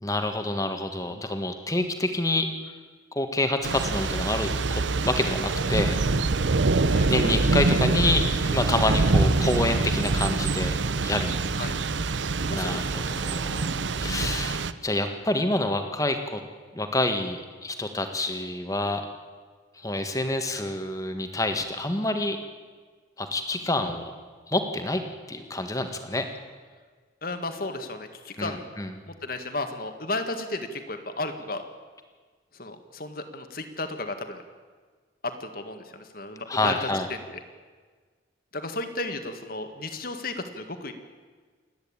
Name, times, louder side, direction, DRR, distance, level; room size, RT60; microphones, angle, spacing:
voice 1, 0.0-2.5 3.1-6.0 7.0-10.8 11.0-11.3 12.5-16.4 16.7-19.0 19.8-22.4 23.2-24.1 24.5-25.0 25.3-26.2 28.4-28.9 36.5-37.1, left 2 dB, 15° left, 6 dB, 1.6 m, -27 dB
Thunder / Rain, 3.6-14.7, right 3 dB, 75° right, 0.7 m, -25 dB
voice 2, 12.5-13.1 27.2-28.6 29.1-31.6 32.5-34.4 35.2-37.2 38.5-40.9, left 2 dB, 50° left, 7 dB, 1.8 m, -34 dB
28.0 x 10.5 x 8.8 m, 1.5 s
head